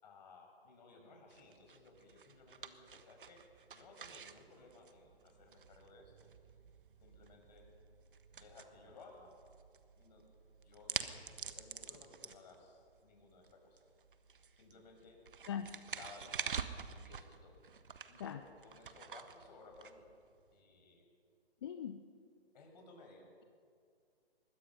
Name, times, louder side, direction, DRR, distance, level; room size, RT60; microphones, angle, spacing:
voice 1, 0.0-3.4 3.7-6.3 7.0-7.7 8.3-9.3 10.0-10.2 10.6-11.0 11.4-13.8 14.6-15.2 15.9-17.5 18.1-20.1 20.5-21.1 22.5-23.3, left 3 dB, 45° left, 2 dB, 5.9 m, -59 dB
sound 1, 1.3-20.5, right 6 dB, 55° right, 1.4 m, -48 dB
voice 2, 21.6-22.0, left 8 dB, 25° left, 9 dB, 0.6 m, -40 dB
24.5 x 21.5 x 5.6 m, 2.2 s
figure-of-eight pair, 130°, 31 cm